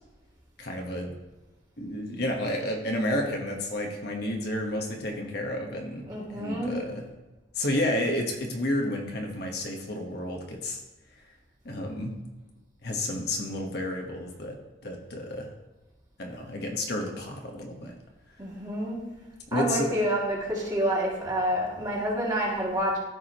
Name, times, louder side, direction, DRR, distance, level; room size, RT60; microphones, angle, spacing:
voice 1, 0.6-1.1 1.8-7.0 7.5-10.8 11.6-12.1 12.8-14.5 14.8-15.5 16.2-17.9 19.5-19.9, left 1 dB, 55° left, 1 dB, 1.2 m, -31 dB
voice 2, 6.1-6.7 18.4-19.0 19.5-23.0, equal, 20° right, -5 dB, 2.2 m, -28 dB
14.0 x 4.8 x 3.0 m, 1.1 s
head